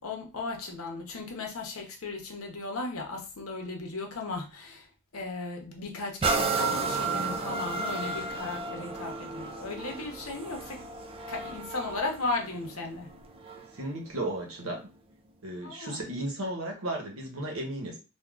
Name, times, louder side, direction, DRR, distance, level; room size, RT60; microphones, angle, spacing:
voice 1, 0.0-4.9 5.1-10.8 11.3-13.1 15.6-16.0, left 3 dB, 85° left, 0.8 m, -36 dB
sound 1, 6.2-13.8 14.4-14.5, right 4 dB, 25° right, 0.3 m, -33 dB
voice 2, 13.7-14.9 15.4-18.0, right 1 dB, 75° right, 0.9 m, -34 dB
3.5 x 2.3 x 2.4 m
head